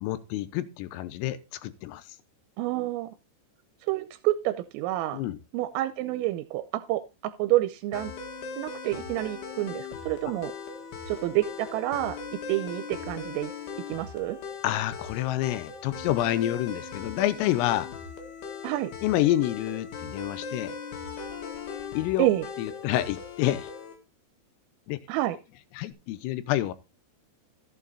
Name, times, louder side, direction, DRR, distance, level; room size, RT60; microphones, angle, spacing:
voice 1, 0.0-2.1 5.1-5.4 14.6-17.9 19.0-20.7 21.9-22.3 22.6-23.7 24.9-25.0 25.8-26.7, left 14 dB, 85° left, 3.5 m, -28 dB
voice 2, 2.6-3.1 3.9-5.2 5.5-8.1 8.6-10.5 11.1-12.2 12.5-13.5 13.9-14.4 18.6-18.9 22.2-22.4 25.1-25.4, right 16 dB, 85° right, 3.3 m, -28 dB
sound 1, 7.9-24.0, left 5 dB, 60° left, 3.5 m, -39 dB
14.0 x 7.6 x 4.0 m
omnidirectional pair, 5.9 m